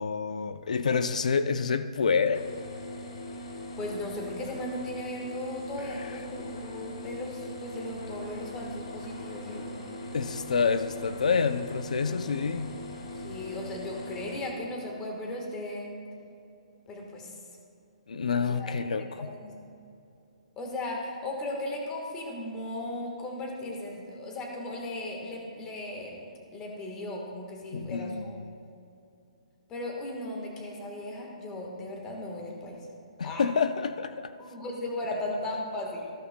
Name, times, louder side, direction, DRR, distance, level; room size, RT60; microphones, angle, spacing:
voice 1, 0.0-2.5 6.0-6.1 10.1-12.7 18.1-19.3 27.7-28.3 33.2-34.3, left 5 dB, 80° left, 11 dB, 0.5 m, -28 dB
sound 1, 2.3-14.5, left 1 dB, 55° left, 1.6 m, -41 dB
voice 2, 3.8-9.7 13.1-16.0 16.9-17.3 18.3-18.7 19.0-19.6 20.6-28.3 28.6-28.7 29.7-32.9 33.2-33.5 34.4-36.1, left 1 dB, 15° left, 0 dB, 1.3 m, -37 dB
14.5 x 12.5 x 2.2 m, 2.7 s
hypercardioid pair, 170°, 4 cm